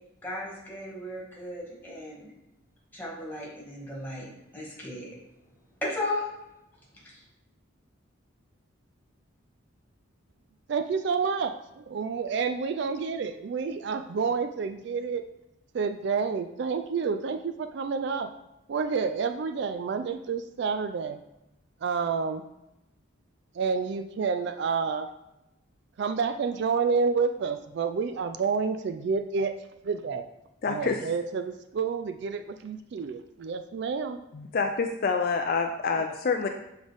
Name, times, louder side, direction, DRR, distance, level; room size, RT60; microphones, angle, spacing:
voice 1, 0.2-2.3 2.9-5.1 5.8-6.3 7.1-7.2, left 1 dB, 10° left, -5 dB, 1.7 m, -35 dB
voice 2, 10.7-15.2 15.7-18.3 18.7-21.2 21.8-22.4 23.5-25.1 26.0-29.5 29.8-30.2 30.7-34.2, right 5 dB, 55° right, 8 dB, 0.3 m, -29 dB
voice 3, 30.6-31.0 34.3-36.5, left 4 dB, 45° left, 4 dB, 0.4 m, -27 dB
7.1 x 3.8 x 3.4 m, 0.91 s
head